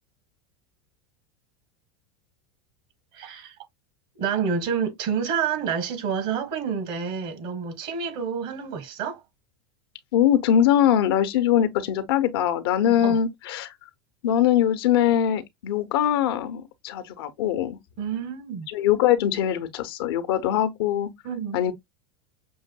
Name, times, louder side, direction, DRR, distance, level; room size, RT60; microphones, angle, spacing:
voice 1, 3.1-3.6 4.2-9.2 13.0-13.2 18.0-18.7 21.2-21.6, right 6 dB, 60° right, 1.5 m, -28 dB
voice 2, 10.1-13.7 14.2-17.8 18.7-21.1 21.5-21.7, left 10 dB, 75° left, 0.8 m, -22 dB
6.2 x 2.6 x 2.2 m
supercardioid pair, 110°, 13 cm